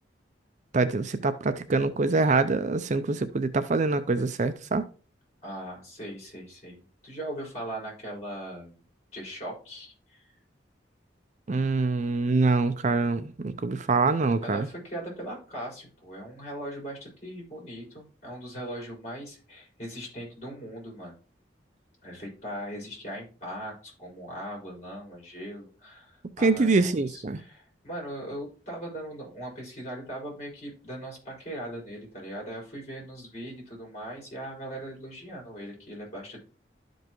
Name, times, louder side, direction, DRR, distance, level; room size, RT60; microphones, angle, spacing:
voice 1, 0.7-4.8 11.5-14.7 26.4-27.4, right 3 dB, 40° right, 0.5 m, -25 dB
voice 2, 5.4-8.8 9.1-10.2 14.4-21.1 22.0-36.4, right 1 dB, 40° left, 5.0 m, -39 dB
12.0 x 5.3 x 3.0 m
head